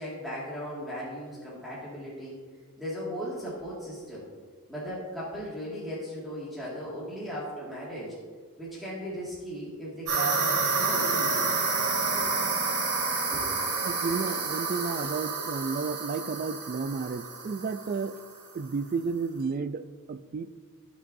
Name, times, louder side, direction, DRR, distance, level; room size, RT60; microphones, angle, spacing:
voice 1, 0.0-2.4 2.8-4.3 4.7-8.2 8.6-11.6 11.8-12.3 13.3-13.8, equal, ahead, -9 dB, 1.9 m, -37 dB
sound 1, 10.1-18.3, right 4 dB, 75° right, 2.3 m, -29 dB
voice 2, 13.8-18.2 18.5-20.6, right 5 dB, 40° right, 11 dB, 0.3 m, -32 dB
16.0 x 6.0 x 2.6 m, 1.6 s
head